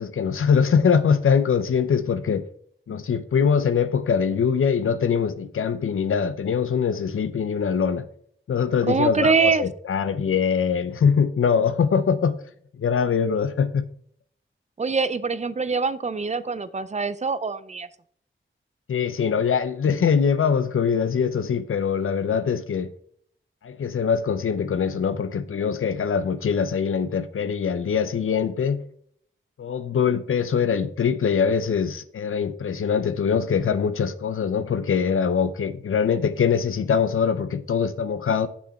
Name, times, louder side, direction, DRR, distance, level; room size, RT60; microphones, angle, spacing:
voice 1, 0.0-2.4 2.9-8.1 8.5-12.4 12.8-13.8 18.9-22.9 23.6-28.8 29.6-38.5, left 6 dB, 85° left, 0.6 m, -23 dB
voice 2, 8.9-9.7 14.8-17.9, right 4 dB, 35° right, 0.4 m, -24 dB
6.4 x 5.7 x 4.3 m
wide cardioid pair, 75°, 21 cm